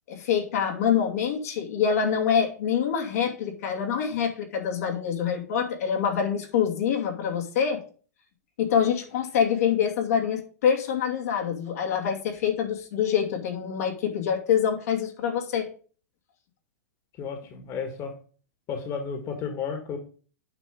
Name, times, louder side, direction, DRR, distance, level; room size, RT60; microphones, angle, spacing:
voice 1, 0.1-7.8 8.6-15.7, left 8 dB, 70° left, 1 dB, 2.8 m, -25 dB
voice 2, 17.2-18.1 18.7-20.0, left 6 dB, 35° left, 5 dB, 2.1 m, -32 dB
8.8 x 5.7 x 5.3 m, 0.40 s
hypercardioid pair, 120°, 9 cm